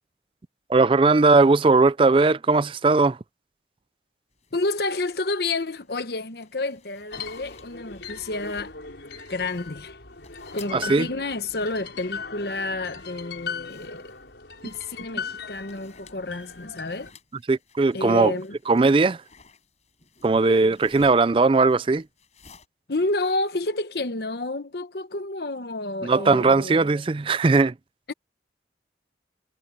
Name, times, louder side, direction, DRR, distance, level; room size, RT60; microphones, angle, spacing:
voice 1, 0.7-3.2 10.7-11.1 17.5-18.3 18.7-19.2 20.2-22.0 26.0-27.7, right 3 dB, 30° right, 0.4 m, -19 dB
sound 1, 4.3-22.7, left 5 dB, 40° left, 6.7 m, -55 dB
voice 2, 4.5-8.7 9.3-10.0 10.5-14.1 14.6-17.1 17.9-18.5 22.9-26.9 28.1-28.2, left 2 dB, 60° left, 1.0 m, -30 dB
sound 2, 7.1-17.1, left 5 dB, 80° left, 5.1 m, -39 dB
head